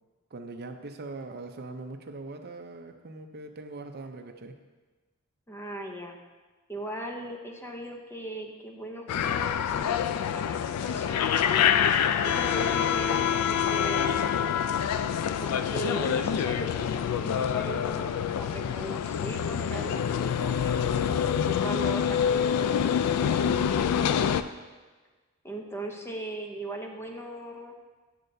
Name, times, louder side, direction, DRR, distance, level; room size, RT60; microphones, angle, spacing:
voice 1, 0.3-4.6, right 3 dB, 45° right, 5 dB, 0.6 m, -41 dB
voice 2, 5.5-6.2 6.7-11.7 12.2-14.3 15.4-20.8 21.5-23.4 25.4-27.7, right 1 dB, 10° left, 2 dB, 0.7 m, -38 dB
sound 1, 9.1-24.4, left 8 dB, 80° left, 0.3 m, -26 dB
9.2 x 6.6 x 2.7 m, 1.3 s
head